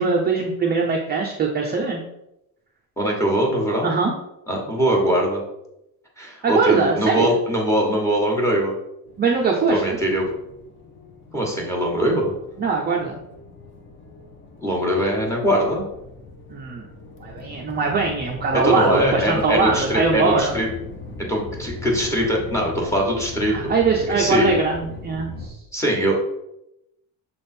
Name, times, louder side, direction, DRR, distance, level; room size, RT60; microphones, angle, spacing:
voice 1, 0.0-2.0 3.8-4.1 6.4-7.3 9.2-10.0 12.6-13.2 16.5-16.9 17.2-20.6 23.5-25.5, right 4 dB, 25° right, -1 dB, 0.6 m, -21 dB
voice 2, 3.0-3.9 4.5-5.4 6.2-8.8 9.7-10.3 11.3-12.3 14.6-15.8 18.5-20.7 21.3-23.7 24.1-24.6 25.7-26.3, equal, 5° left, -1 dB, 1.3 m, -22 dB
sound 1, 9.1-25.5, left 2 dB, 30° left, 0.8 m, -39 dB
6.8 x 3.5 x 4.3 m, 0.85 s
cardioid pair, 160°, 41 cm